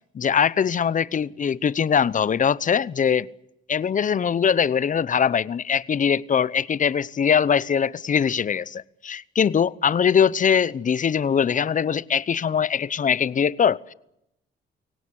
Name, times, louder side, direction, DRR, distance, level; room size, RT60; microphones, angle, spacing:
voice 1, 0.1-3.3 3.7-13.9, left 7 dB, 40° left, 0.9 m, -22 dB
24.0 x 18.0 x 9.8 m
cardioid pair, 90°, 20 cm